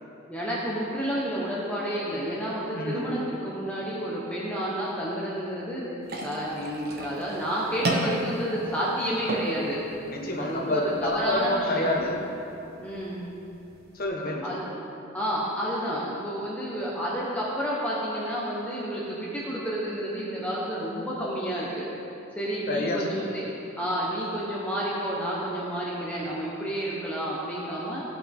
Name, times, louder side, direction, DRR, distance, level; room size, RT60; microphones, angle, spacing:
voice 1, 0.3-5.9 6.2-9.8 10.4-11.9 12.8-13.2 14.4-14.7 15.1-21.9 22.3-23.5 23.8-28.0, equal, 5° left, -7 dB, 1.2 m, -30 dB
voice 2, 2.7-3.1 10.1-12.2 13.9-14.4 22.7-23.3, left 2 dB, 45° left, -1 dB, 1.4 m, -28 dB
sound 1, 6.0-14.0, right 2 dB, 50° right, 1.0 m, -36 dB
16.5 x 5.7 x 3.6 m, 2.8 s
head